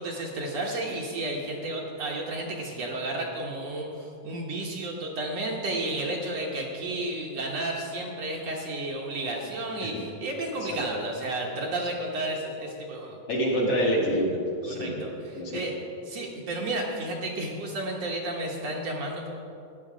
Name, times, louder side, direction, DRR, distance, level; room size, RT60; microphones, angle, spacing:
voice 1, 0.0-13.2 14.7-15.7 16.1-19.3, right 2 dB, 60° right, -2 dB, 2.1 m, -32 dB
voice 2, 13.3-15.0 15.4-15.6, equal, 50° left, -3 dB, 2.5 m, -26 dB
15.0 x 9.8 x 5.0 m, 2.8 s
omnidirectional pair, 3.7 m